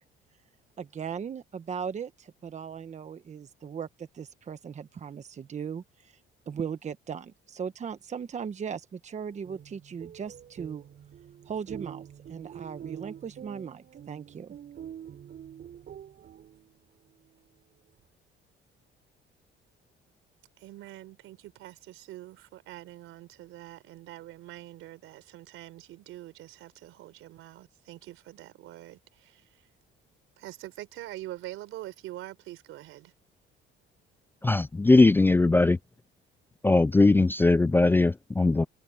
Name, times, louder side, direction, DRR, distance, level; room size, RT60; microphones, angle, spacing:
voice 1, 0.8-6.2 6.5-10.8 11.5-14.6, right 7 dB, 35° right, 1.2 m, -38 dB
sound 1, 9.3-16.9, right 9 dB, 50° right, 7.4 m, -45 dB
voice 2, 20.6-29.7 30.4-33.1, right 15 dB, 80° right, 4.5 m, -44 dB
voice 3, 34.4-35.8 36.6-38.7, left 3 dB, 10° left, 0.3 m, -20 dB
cardioid pair, 115°, 21 cm